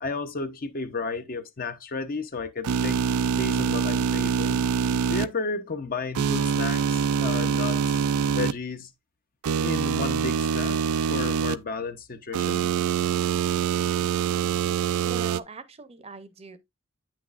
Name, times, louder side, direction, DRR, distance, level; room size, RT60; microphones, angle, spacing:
voice 1, 0.0-3.0 3.3-4.7 5.1-8.0 8.3-8.9 9.6-10.8 11.1-12.7, left 4 dB, 45° left, 0.7 m, -33 dB
sound 1, 2.6-5.3 6.1-8.5 9.4-11.5 12.3-15.4, right 7 dB, 90° right, 0.4 m, -25 dB
voice 2, 15.0-16.6, right 3 dB, 30° right, 0.6 m, -41 dB
8.7 x 6.1 x 2.4 m
head